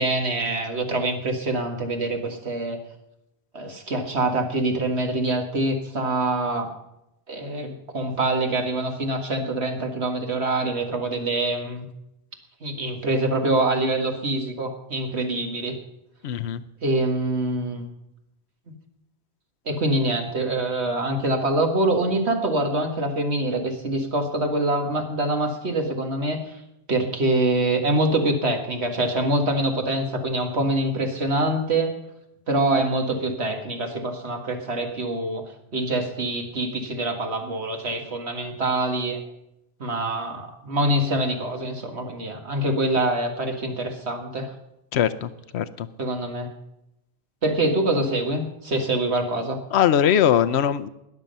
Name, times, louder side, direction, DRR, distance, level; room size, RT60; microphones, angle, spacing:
voice 1, 0.0-2.8 3.5-6.7 7.3-11.9 12.6-15.8 16.8-17.8 19.7-26.6 26.9-31.9 32.5-35.4 35.7-39.2 39.8-44.5 46.0-46.5 47.4-49.6, right 2 dB, 85° right, 4 dB, 2.1 m, -25 dB
voice 2, 16.2-16.6 44.9-45.9 49.7-50.9, left 9 dB, 85° left, 13 dB, 0.9 m, -21 dB
20.0 x 7.5 x 5.4 m, 0.86 s
omnidirectional pair, 1.1 m